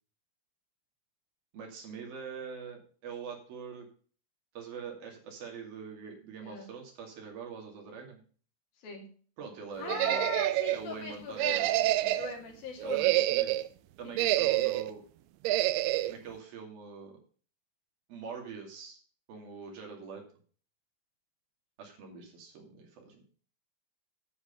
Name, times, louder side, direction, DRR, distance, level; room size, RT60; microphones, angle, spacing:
voice 1, 1.5-3.9 4.6-8.2 9.4-10.4 10.7-12.1 12.8-13.5 14.0-15.0 16.1-17.2 18.1-19.0 19.3-20.2 21.8-23.2, right 6 dB, 65° right, 1 dB, 4.2 m, -44 dB
voice 2, 9.8-11.6 12.1-13.2 14.0-14.1, left 5 dB, 65° left, 1 dB, 4.2 m, -40 dB
sound 1, 9.9-10.8 11.4-12.3 12.8-13.7 14.2-14.9 15.5-16.1, right 16 dB, 85° right, 2.5 m, -27 dB
10.0 x 8.0 x 5.3 m, 0.43 s
omnidirectional pair, 4.6 m